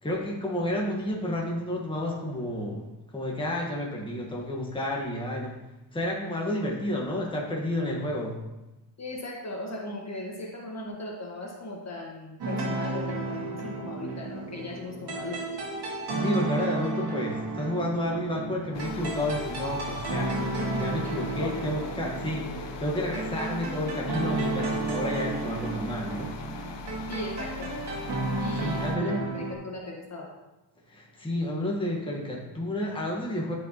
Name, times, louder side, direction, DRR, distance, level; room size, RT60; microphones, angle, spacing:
voice 1, 0.0-2.8 3.1-5.6 5.9-8.4 16.2-20.3 20.7-26.3 28.6-29.2 30.9-33.5, left 1 dB, 10° left, -2 dB, 1.4 m, -31 dB
voice 2, 9.0-15.6 21.0-21.6 27.1-27.7 28.4-30.3, left 2 dB, 35° left, -1 dB, 1.5 m, -38 dB
sound 1, 12.4-29.5, right 2 dB, 55° right, 2.3 m, -32 dB
sound 2, 18.7-29.0, left 5 dB, 60° left, 0.8 m, -41 dB
13.5 x 5.3 x 2.9 m, 1.0 s
cardioid pair, 120°, 47 cm